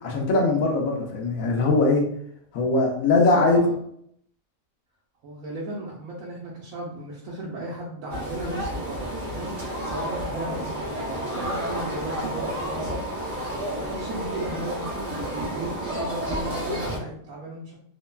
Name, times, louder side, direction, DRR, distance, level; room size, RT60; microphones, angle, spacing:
voice 1, 0.0-2.1 2.5-3.6, left 3 dB, 85° left, 1 dB, 1.1 m, -21 dB
voice 2, 3.3-3.7 5.2-17.8, right 2 dB, 85° right, -4 dB, 1.0 m, -36 dB
sound 1, 8.1-17.0, equal, 25° right, 0.9 m, -31 dB
3.1 x 2.1 x 2.2 m, 0.67 s
omnidirectional pair, 1.4 m